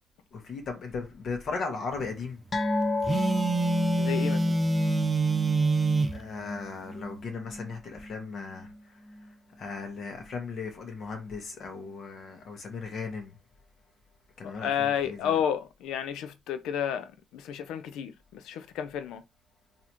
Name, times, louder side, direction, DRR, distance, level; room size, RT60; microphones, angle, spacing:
voice 1, 0.3-2.4 6.1-9.0 9.6-13.4 14.4-15.4, left 4 dB, 60° left, 1.4 m, -37 dB
sound 1, 2.5-9.3 9.6-9.8 10.2-10.3, left 2 dB, 35° left, 0.9 m, -33 dB
Telephone, 3.0-6.2, right 3 dB, 25° right, 0.6 m, -25 dB
voice 2, 4.0-4.6 14.4-19.2, left 9 dB, 90° left, 0.4 m, -31 dB
4.0 x 2.8 x 3.0 m
cardioid pair, 90°, 0 cm